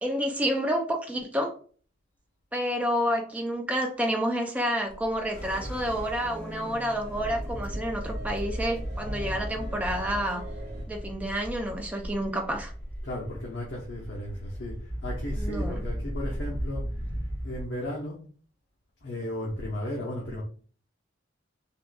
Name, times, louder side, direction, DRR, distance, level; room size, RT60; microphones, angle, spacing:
voice 1, 0.0-1.5 2.5-10.4 10.9-12.7 15.3-15.8, equal, 10° right, 2 dB, 0.4 m, -29 dB
sound 1, 4.9-10.8, equal, 60° right, 0.7 m, -43 dB
sound 2, 5.3-17.7, equal, 60° left, 1.5 m, -36 dB
voice 2, 13.0-14.7 15.0-16.8 17.4-18.2 19.0-20.4, left 1 dB, 75° left, -3 dB, 0.8 m, -35 dB
3.6 x 2.5 x 2.2 m, 0.43 s
head